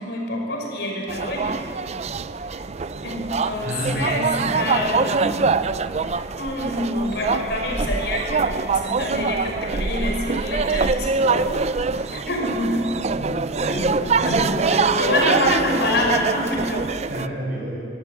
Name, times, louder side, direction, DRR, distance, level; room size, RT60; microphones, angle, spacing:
voice 1, 0.0-1.7 2.5-2.6 3.0-5.5 6.0-13.0 13.7-16.9, left 1 dB, 70° left, 1 dB, 5.8 m, -27 dB
sound 1, 1.1-17.3, right 4 dB, 40° right, 0.5 m, -24 dB
voice 2, 3.6-4.0 4.4-4.9 13.1-15.5 17.1-17.9, equal, 55° right, -1 dB, 7.2 m, -29 dB
24.5 x 16.5 x 8.5 m, 2.3 s
head